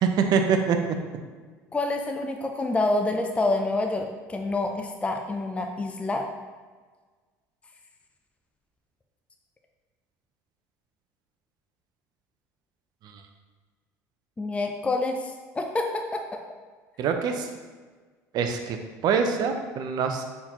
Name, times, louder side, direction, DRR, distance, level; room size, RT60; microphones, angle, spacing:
voice 1, 0.0-0.8 13.0-13.2 17.0-17.5 18.3-18.8 19.0-20.2, right 6 dB, 55° right, 5 dB, 0.6 m, -24 dB
voice 2, 1.7-6.3 14.4-16.2, left 2 dB, 15° left, 3 dB, 0.4 m, -27 dB
4.2 x 4.0 x 2.9 m, 1.4 s
hypercardioid pair, 75°, 8 cm